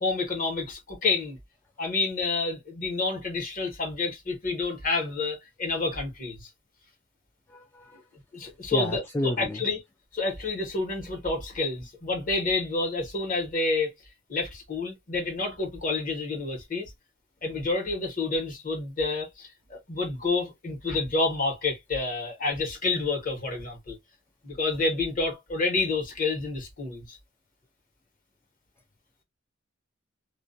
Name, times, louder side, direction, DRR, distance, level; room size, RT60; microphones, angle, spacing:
voice 1, 0.0-1.4 1.8-6.5 8.3-9.8 10.1-13.9 14.3-16.9 17.4-24.0 24.4-27.2, left 3 dB, 45° left, 1.1 m, -29 dB
voice 2, 7.5-8.0 8.7-9.6, left 1 dB, 10° left, 0.3 m, -31 dB
2.5 x 2.2 x 2.5 m
head